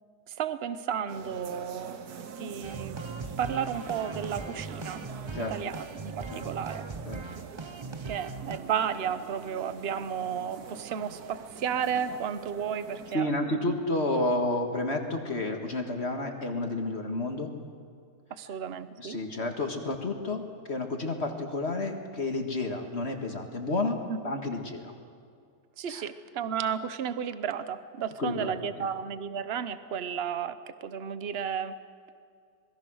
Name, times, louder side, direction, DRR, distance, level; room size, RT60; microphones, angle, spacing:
voice 1, 0.3-2.1 2.4-3.0 3.4-5.0 5.5-6.8 8.1-13.7 18.3-19.2 24.1-24.4 25.8-31.7, right 8 dB, 45° right, 12 dB, 1.0 m, -33 dB
sound 1, 1.1-13.2, right 6 dB, 75° right, 1.6 m, -44 dB
sound 2, 2.6-8.6, right 3 dB, 30° right, 0.5 m, -40 dB
voice 2, 13.1-17.5 19.0-24.9 25.9-26.0 28.2-28.6, left 2 dB, 45° left, 4 dB, 2.0 m, -30 dB
26.5 x 21.0 x 6.3 m, 2.3 s
omnidirectional pair, 1.7 m